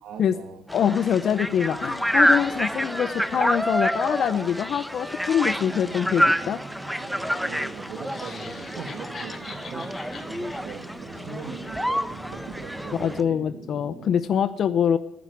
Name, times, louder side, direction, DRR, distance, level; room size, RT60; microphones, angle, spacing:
voice 1, 0.0-0.6 7.1-9.9 10.3-13.4, right 5 dB, 85° right, 4 dB, 1.9 m, -41 dB
voice 2, 0.7-6.6 13.0-15.0, left 8 dB, 65° left, 12 dB, 0.7 m, -24 dB
sound 1, 0.7-13.2, equal, ahead, 1.1 m, -28 dB
sound 2, 5.6-14.2, right 4 dB, 65° right, 2.2 m, -43 dB
sound 3, 7.9-12.2, left 5 dB, 50° left, 3.5 m, -44 dB
14.0 x 10.5 x 9.5 m, 0.80 s
cardioid pair, 90°, 0 cm